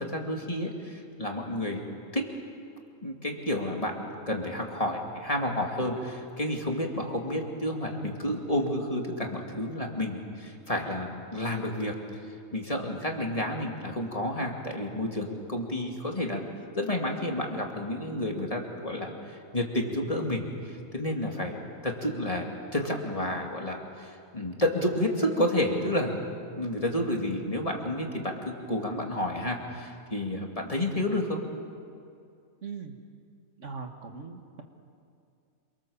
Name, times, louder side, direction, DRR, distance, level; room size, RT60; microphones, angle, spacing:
voice 1, 0.0-1.8 2.1-2.2 3.0-11.9 12.5-16.4 16.8-22.5 22.7-26.2 26.6-31.4, left 1 dB, 25° left, 1 dB, 2.6 m, -30 dB
voice 2, 32.6-33.0 33.6-34.6, right 5 dB, 60° right, 4 dB, 1.9 m, -40 dB
27.5 x 24.0 x 7.2 m, 2.4 s
omnidirectional pair, 1.5 m